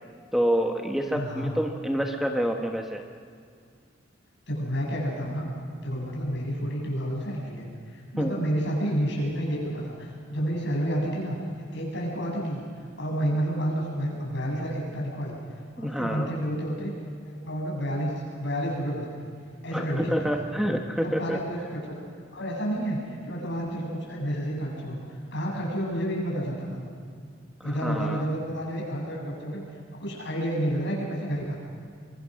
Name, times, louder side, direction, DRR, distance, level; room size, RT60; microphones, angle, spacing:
voice 1, 0.3-3.0 8.2-8.4 15.8-16.3 19.7-21.4 27.6-28.2, equal, ahead, 3 dB, 1.1 m, -27 dB
voice 2, 1.1-1.5 4.5-5.5 5.8-11.4 11.7-15.4 15.8-16.9 17.3-19.1 19.6-20.4 21.0-22.0 22.3-25.0 25.3-26.8 27.6-29.6 29.9-31.6, equal, 65° left, -3 dB, 7.8 m, -30 dB
24.5 x 22.5 x 6.4 m, 2.2 s
head